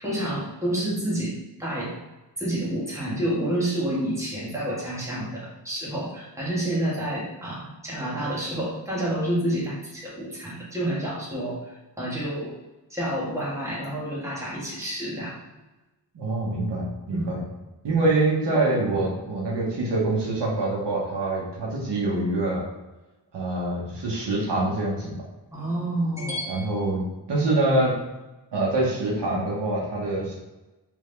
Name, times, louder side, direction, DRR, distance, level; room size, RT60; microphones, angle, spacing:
voice 1, 0.0-1.3 1.6-2.0 2.4-11.6 12.0-12.5 12.9-15.4 17.1-17.3 25.5-26.6, right 1 dB, 5° right, -7 dB, 1.5 m, -29 dB
voice 2, 16.1-17.4 17.8-22.6 23.3-25.2 26.5-28.0 28.5-30.3, right 2 dB, 80° right, -3 dB, 1.3 m, -25 dB
3.6 x 3.5 x 3.3 m, 1.1 s
wide cardioid pair, 135°, 41 cm